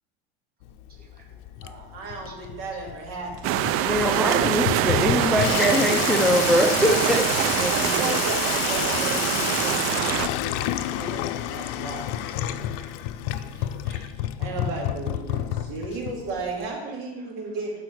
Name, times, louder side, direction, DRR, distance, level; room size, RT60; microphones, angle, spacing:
Water tap faucet / Sink (filling or washing), 0.6-16.7, left 13 dB, 65° left, 0.6 m, -30 dB
voice 1, 1.0-1.4 2.7-2.8 9.6-9.7 12.3-12.9 13.3-14.1 17.2-17.3, right 2 dB, 30° right, 0 dB, 2.1 m, -50 dB
voice 2, 1.6-3.3 4.1-4.9 7.7-12.7 14.4-17.7, right 3 dB, 75° right, -1 dB, 2.8 m, -35 dB
sound 1, 3.4-10.3, right 11 dB, 50° right, 0.5 m, -24 dB
voice 3, 3.8-8.2, equal, ahead, 3 dB, 0.6 m, -23 dB
11.5 x 4.9 x 4.8 m, 1.1 s
supercardioid pair, 130°, 29 cm